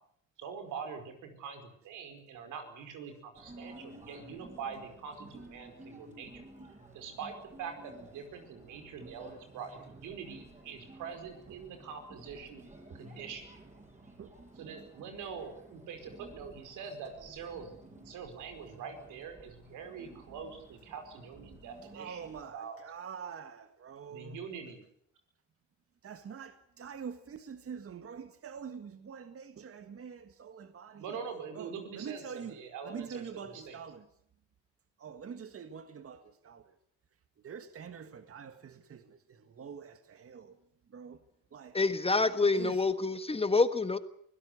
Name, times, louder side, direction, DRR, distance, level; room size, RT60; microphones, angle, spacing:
voice 1, 0.4-12.6 12.9-13.5 14.6-22.2 22.5-22.8 24.1-24.8 31.0-32.2 32.5-33.8, right 6 dB, 90° right, 5.0 m, -44 dB
sound 1, 3.3-22.4, right 1 dB, 25° right, 7.8 m, -54 dB
voice 2, 21.9-24.4 26.0-31.2 31.5-34.1 35.0-36.8 37.4-41.8 42.5-42.8, right 7 dB, 50° right, 1.7 m, -45 dB
voice 3, 41.7-44.0, left 3 dB, 20° left, 1.5 m, -27 dB
24.5 x 16.5 x 8.2 m
cardioid pair, 90°, 30 cm